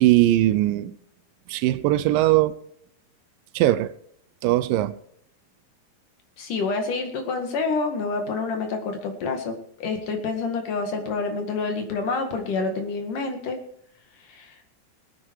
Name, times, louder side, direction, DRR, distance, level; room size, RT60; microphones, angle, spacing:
voice 1, 0.0-1.0 1.5-2.6 3.6-3.9 4.4-4.9, right 15 dB, 80° right, 2.3 m, -20 dB
voice 2, 6.4-9.6 9.8-13.6 14.3-14.5, left 4 dB, 65° left, 3.5 m, -27 dB
19.5 x 8.8 x 4.7 m
omnidirectional pair, 4.0 m